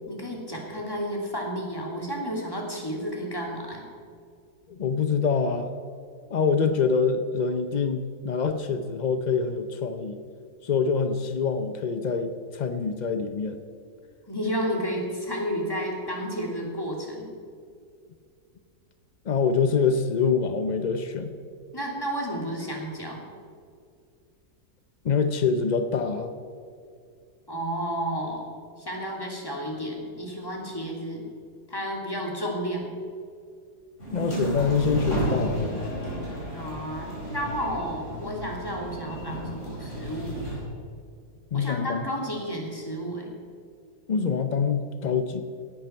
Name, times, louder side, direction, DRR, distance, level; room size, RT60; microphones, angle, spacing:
voice 1, 0.1-3.8 6.6-6.7 14.3-17.3 21.7-23.2 27.5-28.4 28.8-31.2 31.7-32.9 36.5-40.4 41.5-43.3, equal, 15° left, -1 dB, 2.7 m, -32 dB
voice 2, 4.7-5.7 6.3-10.2 10.6-13.6 19.2-21.4 25.0-26.3 34.1-35.9 41.5-42.1 44.1-45.4, left 5 dB, 70° left, 8 dB, 0.4 m, -25 dB
sound 1, 34.0-40.6, right 1 dB, 45° left, 4.7 m, -32 dB
17.5 x 11.5 x 4.5 m, 2.3 s
omnidirectional pair, 1.7 m